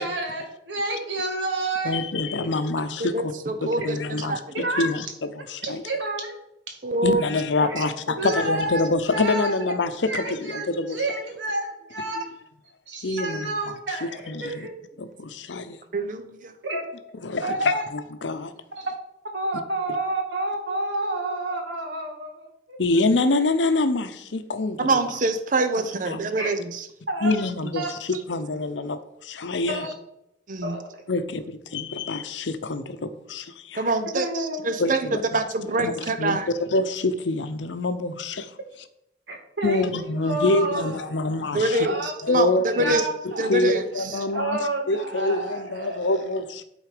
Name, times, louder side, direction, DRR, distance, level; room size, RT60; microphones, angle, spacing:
voice 1, 0.0-2.5 4.5-4.9 5.6-6.4 6.7-6.8 7.7-7.9 8.2-9.6 10.0-12.2 12.9-14.7 16.6-16.8 17.4-17.8 18.8-18.9 19.3-22.8 26.4-26.5 27.1-27.3 27.7-27.9 29.7-29.9 30.6-30.9 34.1-34.7 39.3-41.2 41.7-42.1 42.7-43.6 44.1-46.1, right 2 dB, 85° right, 2.0 m, -30 dB
voice 2, 1.8-3.3 3.6-4.4 4.8-5.1 5.4-5.8 7.0-11.0 13.0-13.5 14.3-14.5 15.0-15.8 17.2-18.5 22.8-24.9 26.1-26.2 27.2-27.8 28.3-29.9 31.1-33.9 34.8-35.4 35.8-38.5 39.6-41.9 42.2-43.0 43.2-44.6 44.9-46.6, left 2 dB, 85° left, 0.7 m, -26 dB
voice 3, 3.0-4.0 4.3-4.4 6.8-7.2 7.6-7.7 8.1-8.2 15.9-16.5 24.8-26.9 30.5-30.8 33.7-36.5 41.5-43.0 43.4-44.3 45.8-46.1, right 2 dB, 45° right, 0.7 m, -25 dB
11.5 x 4.0 x 5.0 m
head